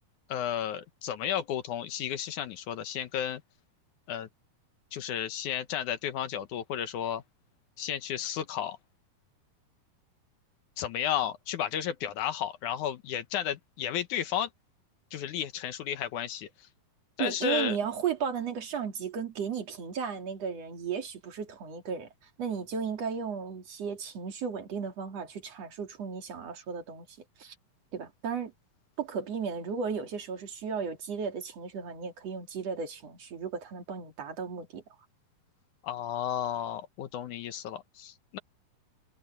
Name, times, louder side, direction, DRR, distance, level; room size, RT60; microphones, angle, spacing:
voice 1, 0.3-3.4 4.1-4.3 4.9-7.2 7.8-8.8 10.8-14.5 15.1-16.5 17.2-17.8 35.8-38.4, left 10 dB, 70° left, 2.3 m, -33 dB
voice 2, 17.2-22.1 22.4-27.1 27.4-27.5 27.9-28.5 29.0-34.8, right 6 dB, 50° right, 3.5 m, -34 dB
omnidirectional pair, 3.9 m